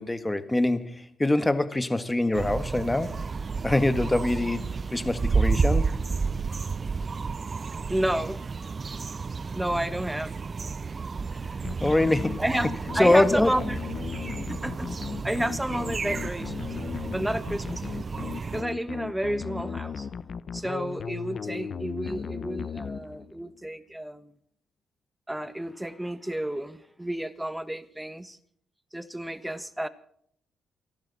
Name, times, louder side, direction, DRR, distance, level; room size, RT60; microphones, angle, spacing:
voice 1, 0.0-3.2 3.6-5.9 11.8-12.4 13.0-13.5, left 2 dB, 10° left, 1.6 m, -24 dB
sound 1, 2.3-18.6, right 4 dB, 35° right, 0.5 m, -31 dB
voice 2, 7.9-8.4 9.5-10.3 12.4-13.8 14.5-14.9 15.2-16.7 17.1-18.0 18.5-20.1 20.5-24.3 25.3-28.4 28.9-29.9, right 1 dB, 5° right, 1.5 m, -31 dB
sound 2, 11.6-23.5, left 6 dB, 50° left, 0.9 m, -36 dB
29.0 x 12.0 x 4.2 m
cardioid pair, 90°, 0 cm